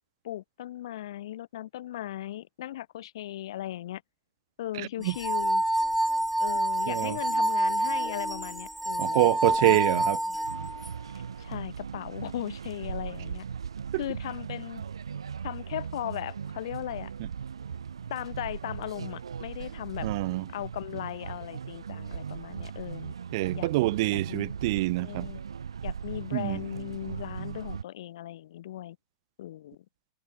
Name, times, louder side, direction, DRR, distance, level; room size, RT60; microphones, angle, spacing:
voice 1, 0.2-4.0 4.6-5.6 6.4-9.3 9.6-10.4 11.4-13.5 14.0-14.8 15.4-17.1 18.1-20.1 20.5-23.1 23.5-23.7 24.1-24.5 25.0-25.4 25.8-29.0 29.4-29.8, left 13 dB, 70° left, 1.9 m, -37 dB
voice 2, 4.8-5.1 6.9-7.2 9.0-10.2 13.9-14.0 20.0-20.5 23.3-25.3 26.3-26.6, right 20 dB, 60° right, 1.0 m, -26 dB
sound 1, 5.1-10.9, right 1 dB, 5° right, 0.5 m, -27 dB
sound 2, 10.4-27.8, right 7 dB, 90° right, 2.5 m, -38 dB
hypercardioid pair, 110°, 3 cm